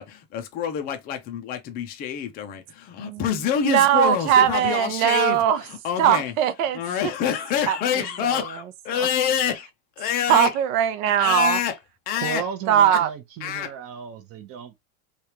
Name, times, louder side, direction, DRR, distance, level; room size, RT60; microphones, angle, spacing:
voice 1, 0.0-6.3 6.7-9.7 10.0-10.5 11.2-11.8 12.1-12.4 12.9-13.0 13.4-13.7, left 9 dB, 20° left, 0.4 m, -27 dB
voice 2, 3.6-5.6 6.0-6.8 7.7-7.8 8.2-8.4 10.3-11.6 12.7-13.1, right 10 dB, 65° right, 0.7 m, -20 dB
voice 3, 12.2-14.8, right 7 dB, 30° right, 0.7 m, -34 dB
3.2 x 2.4 x 2.8 m
supercardioid pair, 155°, 44 cm